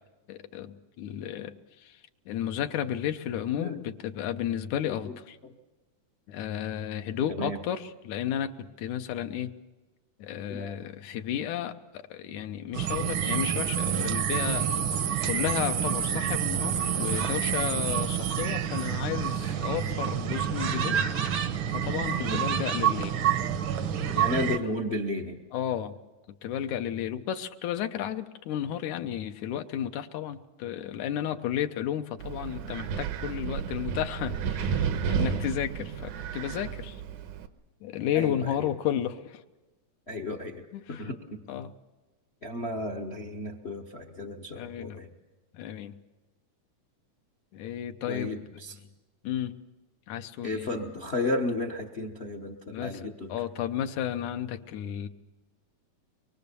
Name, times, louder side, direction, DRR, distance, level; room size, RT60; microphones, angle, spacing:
voice 1, 0.3-1.6 1.8-2.0 2.3-5.4 6.3-9.5 10.2-14.7 15.3-21.0 21.7-23.2 25.5-26.0 26.4-37.0 37.8-39.4 40.7-41.1 41.5-41.7 44.5-45.0 45.5-46.0 47.5-48.4 49.2-49.5 50.1-50.7 52.7-55.1, left 10 dB, 85° left, 7 dB, 2.3 m, -33 dB
voice 2, 4.8-5.1 5.4-5.5 7.3-7.6 10.5-10.8 22.2-22.4 24.1-25.4 38.1-38.7 40.1-41.4 42.4-45.1 48.1-48.8 50.4-53.4, left 2 dB, 60° left, 4 dB, 0.6 m, -33 dB
sound 1, 12.7-24.6, right 9 dB, 70° right, 1.2 m, -28 dB
Wind, 32.2-37.5, right 7 dB, 85° right, 2.4 m, -32 dB
24.0 x 22.5 x 6.9 m, 1.2 s
omnidirectional pair, 3.3 m